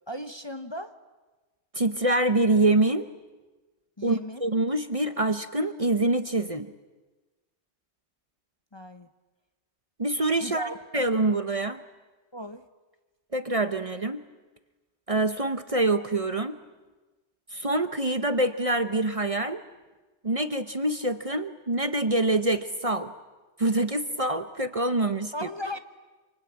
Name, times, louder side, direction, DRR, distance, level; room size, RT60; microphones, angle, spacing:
voice 1, 0.1-1.0 4.0-4.4 8.7-9.1 10.4-10.8 12.3-12.7 25.3-25.8, equal, 25° left, 8 dB, 0.9 m, -36 dB
voice 2, 1.7-3.1 4.0-6.7 10.0-11.8 13.3-14.2 15.1-16.6 17.5-19.6 20.2-23.1 23.6-25.3, right 2 dB, 30° right, 10 dB, 1.0 m, -25 dB
27.0 x 25.5 x 8.7 m, 1.2 s
omnidirectional pair, 1.2 m